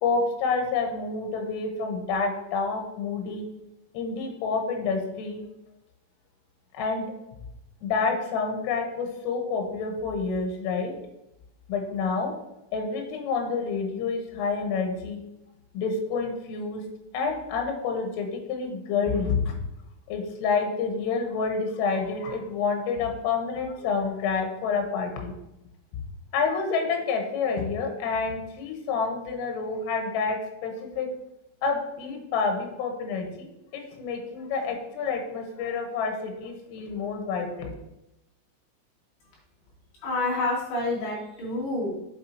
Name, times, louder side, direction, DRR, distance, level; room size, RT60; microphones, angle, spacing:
voice 1, 0.0-3.5 3.9-5.4 6.7-7.1 7.8-11.0 11.7-12.3 12.7-15.2 15.7-16.8 17.1-19.6 20.1-25.3 25.9-26.0 26.3-31.1 31.6-37.7, left 4 dB, 85° left, 3 dB, 3.7 m, -28 dB
voice 2, 40.0-41.9, left 2 dB, 55° left, -8 dB, 4.3 m, -28 dB
8.7 x 5.7 x 2.8 m, 0.88 s
omnidirectional pair, 5.7 m